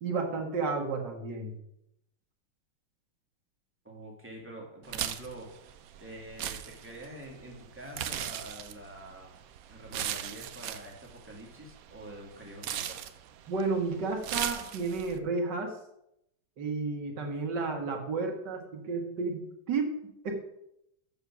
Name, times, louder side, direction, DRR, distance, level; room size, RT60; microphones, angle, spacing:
voice 1, 0.0-1.5 13.5-15.7 16.6-19.9 20.2-20.4, right 4 dB, 60° right, 2 dB, 2.1 m, -32 dB
voice 2, 3.8-9.3 9.7-13.0, right 1 dB, 5° right, -2 dB, 2.1 m, -46 dB
sound 1, 4.8-15.2, right 10 dB, 85° right, 0.7 m, -39 dB
7.3 x 7.1 x 6.1 m, 0.80 s
omnidirectional pair, 2.2 m